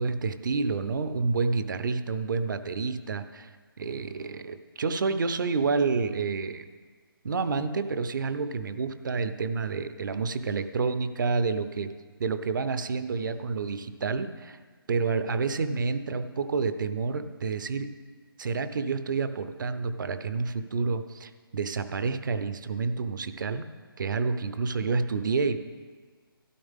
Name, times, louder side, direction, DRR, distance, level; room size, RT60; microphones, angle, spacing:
voice 1, 0.0-3.5 3.8-6.6 7.2-11.9 12.2-14.6 14.9-17.9 18.4-23.6 24.0-25.6, right 4 dB, 55° right, 11 dB, 0.8 m, -29 dB
12.5 x 12.5 x 3.7 m, 1.5 s
hypercardioid pair, 155°, 12 cm